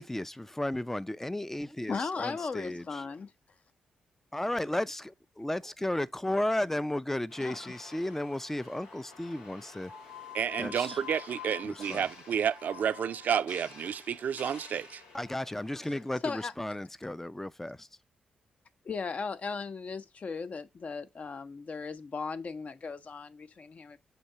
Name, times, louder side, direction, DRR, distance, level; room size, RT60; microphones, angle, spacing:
voice 1, 0.0-2.8 4.3-9.9 10.6-10.9 11.6-12.0 15.1-17.9, left 1 dB, 10° left, 0.5 m, -34 dB
voice 2, 1.9-3.3 7.4-7.7 9.7-9.8 15.8-16.5 18.8-24.0, left 4 dB, 50° left, 0.8 m, -37 dB
sound 1, 7.3-16.2, left 6 dB, 85° left, 1.1 m, -49 dB
voice 3, 10.3-15.0, right 8 dB, 65° right, 0.5 m, -31 dB
6.7 x 2.8 x 5.5 m
hypercardioid pair, 45°, 3 cm